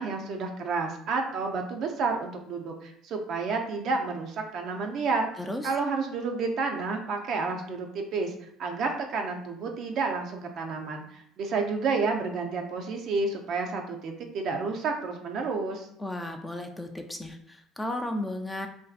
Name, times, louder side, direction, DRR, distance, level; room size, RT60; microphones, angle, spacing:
voice 1, 0.0-5.3 5.6-8.3 8.6-15.9, right 4 dB, 60° right, 3 dB, 0.4 m, -30 dB
voice 2, 5.4-5.8 16.0-18.7, left 1 dB, 10° left, 4 dB, 0.3 m, -34 dB
2.5 x 2.2 x 2.4 m, 0.70 s
supercardioid pair, 90°, 0 cm